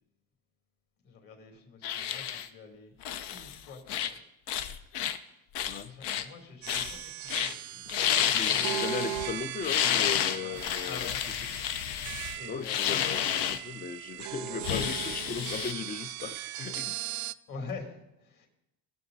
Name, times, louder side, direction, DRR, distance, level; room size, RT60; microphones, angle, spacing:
voice 1, 1.0-2.9 3.3-4.2 5.8-7.9 8.3-8.7 9.1-9.3 10.4-11.2 12.3-13.6 14.5-14.7 17.5-18.5, left 4 dB, 55° left, 3 dB, 2.7 m, -46 dB
sound 1, 1.8-2.5 3.0-3.6 3.9-4.2 4.5-5.2 5.6-6.3 6.7-7.0 7.3-7.5 7.9-9.3 9.6-13.6 14.6-15.7, left 10 dB, 75° left, 0.9 m, -30 dB
voice 2, 5.7-6.0 8.3-11.1 12.5-17.0, left 6 dB, 25° left, 13 dB, 0.4 m, -37 dB
sound 2, 6.6-17.3, right 15 dB, 50° right, 0.4 m, -39 dB
18.5 x 6.7 x 4.0 m, 0.89 s
cardioid pair, 125°, 40 cm